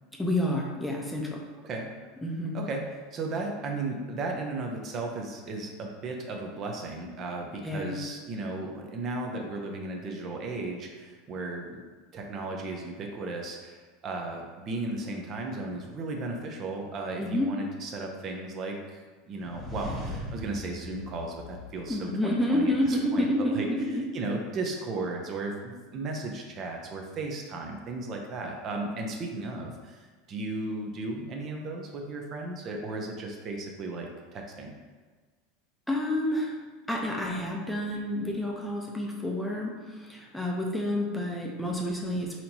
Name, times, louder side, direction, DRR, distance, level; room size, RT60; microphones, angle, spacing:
voice 1, 0.2-1.4 2.2-2.6 7.6-8.0 17.2-17.5 21.9-24.1 35.9-36.5 36.9-42.4, left 1 dB, 5° left, -2 dB, 0.5 m, -29 dB
voice 2, 1.6-1.9 2.5-11.8 12.1-23.7 24.1-34.7, right 2 dB, 40° right, 1 dB, 0.5 m, -35 dB
sound 1, 19.3-22.3, left 1 dB, 20° right, 0.9 m, -39 dB
4.2 x 2.9 x 2.7 m, 1.4 s
supercardioid pair, 130°, 0 cm